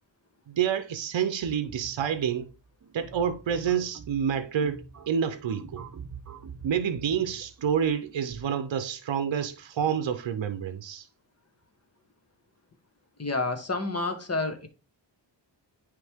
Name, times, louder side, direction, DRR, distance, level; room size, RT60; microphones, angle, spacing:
voice 1, 0.5-2.5 2.9-5.8 6.6-11.1, right 8 dB, 75° right, 0.7 m, -28 dB
sound 1, 1.4-8.5, right 5 dB, 40° right, 0.8 m, -46 dB
voice 2, 13.2-14.7, left 3 dB, 35° left, 1.3 m, -29 dB
9.3 x 3.4 x 3.5 m
cardioid pair, 60°, 45 cm